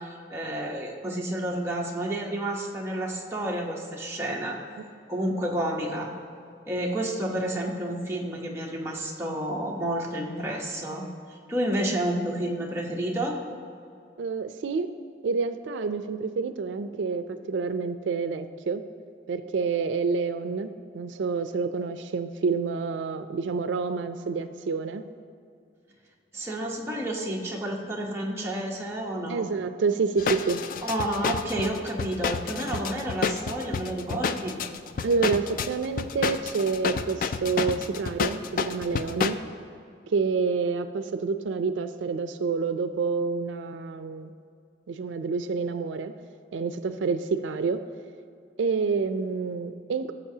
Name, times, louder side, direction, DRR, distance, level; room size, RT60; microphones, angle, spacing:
voice 1, 0.0-4.6 5.1-6.1 6.7-11.0 11.5-13.4 26.3-29.4 30.8-34.6, right 1 dB, 15° right, -2 dB, 0.9 m, -30 dB
voice 2, 14.2-14.9 15.2-18.8 19.3-25.0 29.3-30.6 35.0-39.4 40.1-44.3 44.9-46.1 46.5-47.8 48.6-50.1, right 4 dB, 85° right, 10 dB, 0.4 m, -28 dB
sound 1, 30.2-39.3, left 5 dB, 45° left, 0.3 m, -30 dB
15.5 x 7.2 x 2.8 m, 2.4 s
head